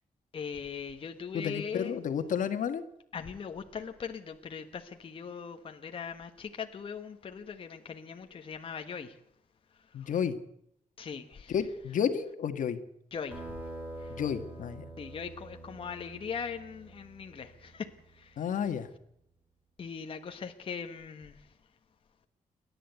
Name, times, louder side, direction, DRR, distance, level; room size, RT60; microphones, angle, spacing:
voice 1, 0.3-2.0 3.1-9.2 10.0-10.1 11.0-11.5 13.1-13.4 14.0-14.1 15.0-18.4 19.8-21.4, left 6 dB, 40° left, 5 dB, 1.3 m, -40 dB
voice 2, 1.3-2.8 9.9-10.4 11.5-12.8 14.1-14.9 18.4-18.9, left 8 dB, 75° left, 9 dB, 1.7 m, -31 dB
sound 1, 13.3-18.4, right 2 dB, 10° right, 4.1 m, -46 dB
29.0 x 11.0 x 8.2 m, 0.73 s
wide cardioid pair, 170°, 13 cm